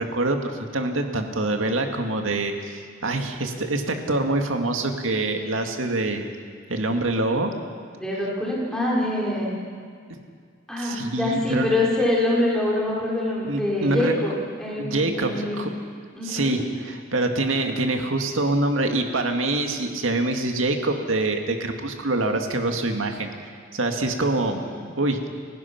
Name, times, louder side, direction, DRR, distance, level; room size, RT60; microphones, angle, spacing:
voice 1, 0.0-6.3 6.7-7.5 10.8-11.7 13.5-14.1 14.8-15.7 16.2-24.6 25.0-25.3, right 2 dB, 90° right, 4 dB, 2.0 m, -25 dB
voice 2, 8.0-9.6 10.7-15.7 16.1-16.6 24.5-24.9, left 1 dB, 5° left, -5 dB, 4.0 m, -25 dB
30.0 x 16.0 x 5.9 m, 2.1 s
head